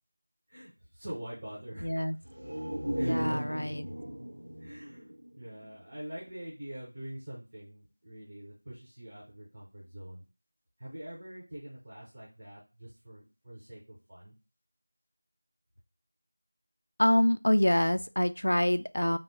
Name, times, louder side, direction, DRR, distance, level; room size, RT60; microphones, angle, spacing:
voice 1, 0.5-2.1 3.0-3.6 4.6-10.3 10.8-14.3, right 1 dB, 15° right, -6 dB, 0.5 m, -44 dB
voice 2, 1.8-2.2 3.0-3.9 17.0-19.2, left 1 dB, 75° left, 11 dB, 0.3 m, -26 dB
sound 1, 2.2-5.9 6.3-6.4, equal, 65° right, 0.5 m, -36 dB
3.4 x 2.7 x 3.2 m, 0.30 s
figure-of-eight pair, 180°, 0 cm